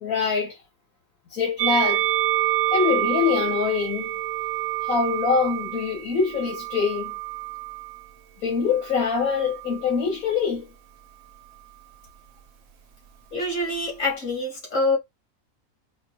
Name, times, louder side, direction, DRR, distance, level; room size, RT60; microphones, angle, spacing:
voice 1, 0.0-0.5 1.3-2.0 2.7-4.1 4.8-7.1 8.4-10.7, left 6 dB, 80° left, 1.7 m, -24 dB
Musical instrument, 1.6-8.0 8.8-9.8, right 14 dB, 70° right, 1.0 m, -27 dB
voice 2, 13.3-15.0, left 2 dB, 60° left, 3.1 m, -25 dB
5.1 x 2.0 x 2.8 m
omnidirectional pair, 1.5 m